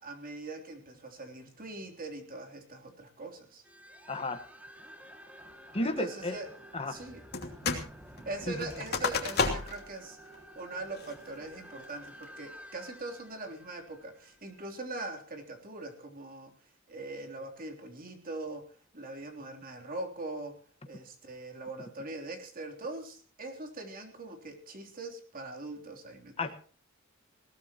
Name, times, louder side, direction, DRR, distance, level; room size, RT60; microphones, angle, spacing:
voice 1, 0.0-3.6 5.8-6.5 6.9-7.2 8.3-10.2 10.6-16.5 16.9-18.7 18.9-20.6 20.9-26.4, right 2 dB, 45° right, 3 dB, 3.4 m, -41 dB
sound 1, 3.6-14.9, equal, 5° right, 2.3 m, -51 dB
voice 2, 4.1-4.4 5.7-6.3 6.7-6.9 8.5-8.6 26.4-26.5, left 2 dB, 30° left, 6 dB, 1.5 m, -32 dB
sound 2, 7.3-7.9 8.2-9.9 10.3-10.4 10.9-11.3 11.8-12.2, left 4 dB, 50° left, 2.9 m, -32 dB
20.0 x 18.5 x 3.0 m, 0.41 s
head